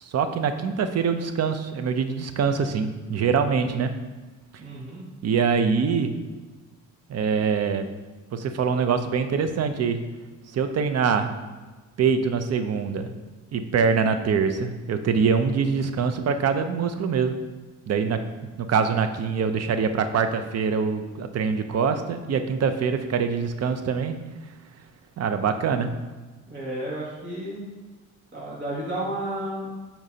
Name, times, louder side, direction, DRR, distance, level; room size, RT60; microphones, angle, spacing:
voice 1, 0.0-3.9 5.2-6.1 7.1-7.9 8.3-10.0 10.5-11.3 12.0-13.1 13.5-17.4 17.9-18.2 18.6-24.2 25.2-25.9, right 6 dB, 55° right, 8 dB, 0.7 m, -24 dB
voice 2, 4.6-5.0 26.5-27.7 28.3-29.7, right 1 dB, 40° right, -7 dB, 2.0 m, -32 dB
9.0 x 4.5 x 2.8 m, 1.3 s
cardioid pair, 90°, 30 cm